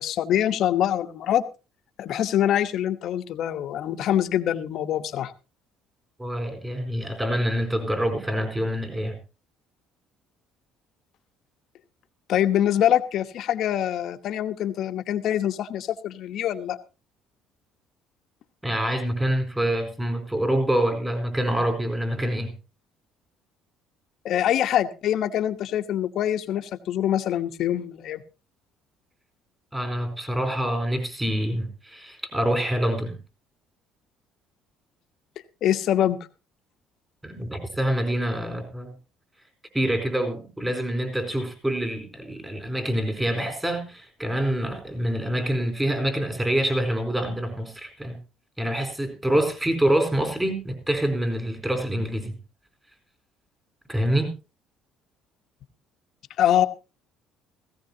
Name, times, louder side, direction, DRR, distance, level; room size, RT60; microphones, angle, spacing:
voice 1, 0.0-1.4 2.0-5.3 12.3-16.8 24.2-28.2 35.6-36.3 56.4-56.7, left 11 dB, 60° left, 9 dB, 1.1 m, -24 dB
voice 2, 6.2-9.2 18.6-22.5 29.7-33.2 37.2-38.9 39.7-48.2 48.6-52.4 53.9-54.3, right 1 dB, 10° right, 5 dB, 4.2 m, -26 dB
17.5 x 16.0 x 2.8 m, 0.31 s
cardioid pair, 105°, 0 cm